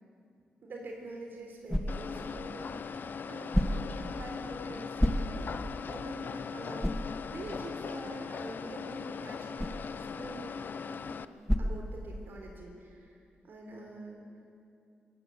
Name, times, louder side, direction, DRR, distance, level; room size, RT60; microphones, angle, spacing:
voice 1, 0.6-10.6 10.8-11.1 11.6-13.2 13.4-14.3, right 2 dB, 65° right, 1 dB, 3.8 m, -45 dB
sound 1, 0.8-12.6, equal, 5° left, 1.2 m, -36 dB
sound 2, 1.9-11.2, left 6 dB, 55° left, 0.7 m, -39 dB
22.0 x 17.5 x 8.4 m, 2.5 s
wide cardioid pair, 115°, 4 cm